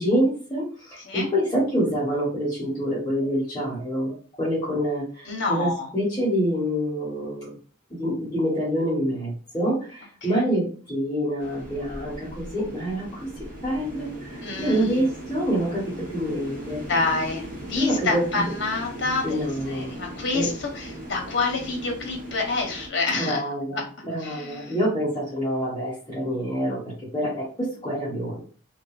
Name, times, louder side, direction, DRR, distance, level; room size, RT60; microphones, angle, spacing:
voice 1, 0.0-7.5 7.9-13.3 13.6-16.8 17.7-18.4 19.2-19.9 20.3-20.5 23.1-23.8 24.1-28.4, equal, 20° left, -6 dB, 1.0 m, -26 dB
voice 2, 5.3-5.9 10.2-10.4 14.4-15.0 16.9-19.4 19.6-23.4 23.7-23.8 24.2-24.7, left 3 dB, 60° left, 1 dB, 0.8 m, -27 dB
sound 1, 11.4-22.9, equal, 40° right, 0.9 m, -38 dB
2.8 x 2.4 x 2.4 m, 0.41 s
head